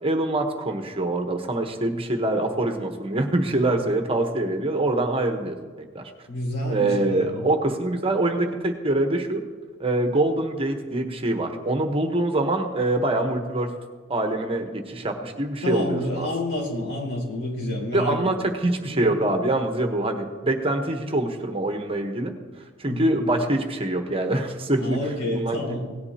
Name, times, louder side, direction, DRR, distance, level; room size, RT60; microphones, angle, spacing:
voice 1, 0.0-5.6 5.9-6.0 6.7-9.4 9.8-13.7 14.1-16.3 17.9-22.3 22.8-25.8, right 2 dB, 30° right, 4 dB, 1.0 m, -24 dB
voice 2, 6.3-7.5 15.6-18.3 18.9-19.2 22.9-23.1 24.8-25.9, left 1 dB, 80° left, -2 dB, 4.2 m, -29 dB
17.5 x 10.5 x 2.8 m, 1.5 s
head